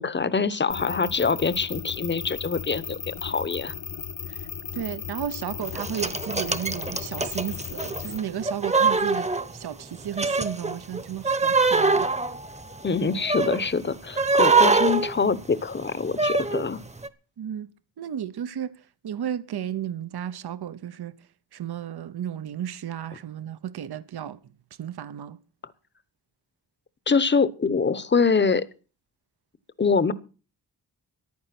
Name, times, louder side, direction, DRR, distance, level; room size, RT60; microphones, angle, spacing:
voice 1, 0.0-3.7 12.8-16.8 27.1-28.6 29.8-30.1, left 5 dB, 25° left, 0.9 m, -24 dB
sound 1, 0.7-8.2, left 7 dB, 50° left, 1.2 m, -36 dB
voice 2, 4.7-12.1 17.4-17.7 18.0-18.7 19.0-21.1 21.5-24.4 24.8-25.4, right 9 dB, 70° right, 0.9 m, -33 dB
sound 2, 5.7-9.8 10.1-13.7 14.2-16.7 17.0-17.1, right 4 dB, 15° right, 1.0 m, -23 dB
14.5 x 11.0 x 6.0 m
wide cardioid pair, 140°, 40 cm